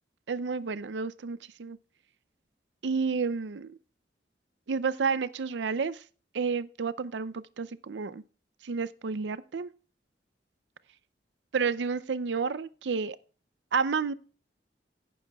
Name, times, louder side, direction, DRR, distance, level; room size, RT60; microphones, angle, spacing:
voice 1, 0.3-1.8 2.8-3.8 4.7-6.0 6.3-8.2 8.6-9.7 11.5-13.2 13.7-14.1, right 5 dB, 80° right, 0.5 m, -30 dB
16.5 x 9.3 x 2.3 m
head